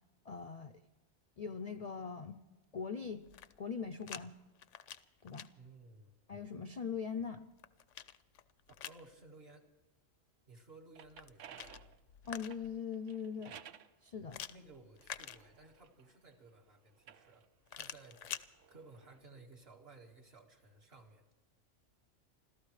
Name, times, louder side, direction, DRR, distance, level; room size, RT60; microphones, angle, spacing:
voice 1, 0.3-0.7 1.4-2.4 2.7-3.3 3.6-4.4 5.2-5.5 6.3-7.5 12.3-13.6 14.0-14.4, left 6 dB, 50° left, 10 dB, 0.5 m, -41 dB
sound 1, 3.2-4.2 4.6-5.5 7.2-9.1 11.0-12.8 14.3-15.9 17.7-18.5, left 10 dB, 80° left, 1.0 m, -48 dB
voice 2, 5.6-6.1 8.8-9.7 10.5-12.0 14.3-18.3 18.7-21.3, right 3 dB, 55° right, 0 dB, 2.0 m, -58 dB
sound 2, 10.7-13.9 14.7-16.4 16.9-19.2, right 9 dB, 85° right, 1.0 m, -57 dB
28.0 x 14.0 x 3.2 m, 1.2 s
omnidirectional pair, 1.2 m